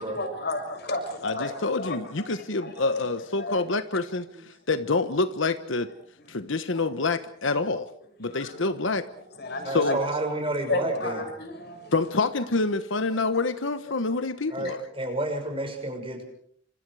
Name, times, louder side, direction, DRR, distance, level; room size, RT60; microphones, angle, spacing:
voice 1, 0.0-3.0 3.4-3.6 7.0-7.1 8.3-8.8 9.3-9.9 10.7-11.9, left 2 dB, 55° left, 5 dB, 6.7 m, -33 dB
voice 2, 1.2-5.9 6.3-7.9 8.2-9.1 9.7-10.0 11.9-14.8, left 3 dB, 70° left, 11 dB, 1.2 m, -27 dB
voice 3, 9.6-11.2 14.5-16.2, right 1 dB, 30° right, 5 dB, 6.1 m, -30 dB
29.0 x 26.5 x 4.9 m, 0.63 s
head